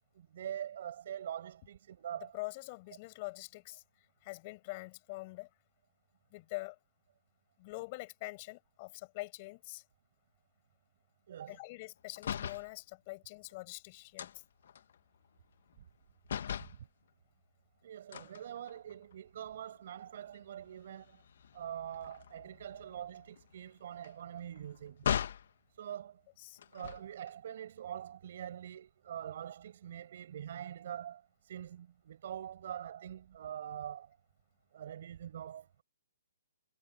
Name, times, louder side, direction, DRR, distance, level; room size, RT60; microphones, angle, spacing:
voice 1, 0.1-2.3 11.3-11.6 16.6-16.7 17.8-21.2 21.5-25.1 25.7-26.2 26.7-34.2 34.7-35.8, right 10 dB, 45° right, 6.2 m, -44 dB
voice 2, 2.3-3.8 4.2-5.5 6.3-6.8 7.6-9.8 11.5-14.4 26.4-26.6, left 24 dB, 25° left, 5.6 m, -44 dB
sound 1, 12.1-12.7 14.2-16.0 16.2-16.8 18.1-19.1 19.6-19.8 20.1-25.5 26.6-27.3, left 8 dB, 50° left, 1.3 m, -40 dB
hypercardioid pair, 170°, 0 cm